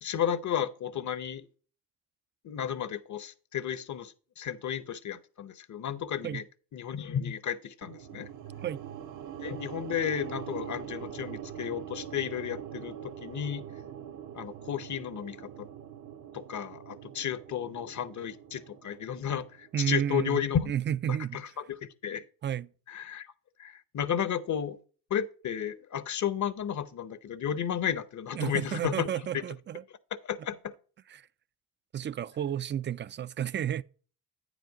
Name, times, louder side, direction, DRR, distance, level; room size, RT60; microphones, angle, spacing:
voice 1, 0.0-1.5 2.4-6.4 6.7-8.3 9.4-13.7 14.3-15.7 16.3-20.7 21.1-22.2 22.9-23.3 23.6-24.8 25.1-29.1 29.3-29.4 30.3-30.7, left 9 dB, 50° left, 0.8 m, -33 dB
sound 1, 7.8-20.1, right 10 dB, 55° right, 0.8 m, -43 dB
voice 2, 19.7-21.4 22.4-22.7 28.3-29.8 31.1-31.3 31.9-33.8, right 9 dB, 30° right, 0.4 m, -32 dB
9.0 x 5.0 x 5.0 m
supercardioid pair, 60°, 38 cm